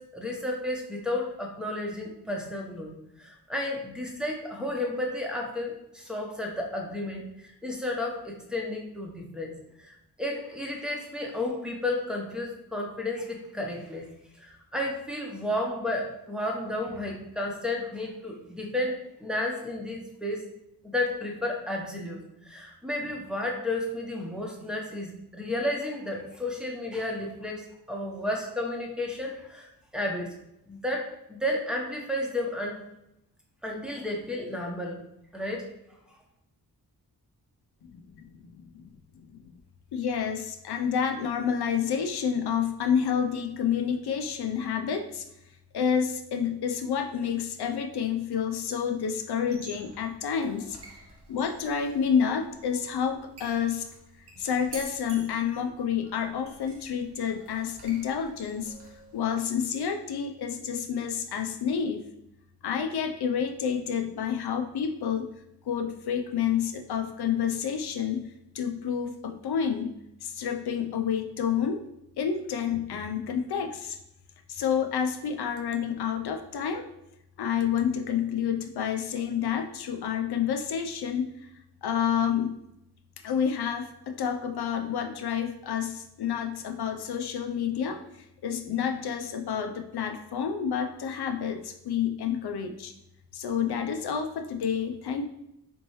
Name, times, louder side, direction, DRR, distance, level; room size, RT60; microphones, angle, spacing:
voice 1, 0.0-2.9 3.2-9.5 9.8-14.1 14.4-20.5 20.8-29.7 29.9-30.4 30.7-32.8 33.6-35.0 35.3-35.7, left 1 dB, ahead, 0 dB, 0.9 m, -32 dB
voice 2, 37.9-38.9 39.2-39.4 39.9-45.2 45.7-50.8 51.3-53.9 54.4-58.7 59.1-62.1 62.6-65.3 65.7-68.3 68.5-69.9 70.2-71.8 72.2-74.0 74.5-76.9 77.4-81.3 81.8-82.6 83.2-92.9 93.3-95.3, left 7 dB, 70° left, 5 dB, 0.6 m, -29 dB
sound 1, 49.4-59.2, right 2 dB, 80° right, 1.0 m, -49 dB
4.3 x 3.0 x 3.1 m, 0.85 s
cardioid pair, 55°, 40 cm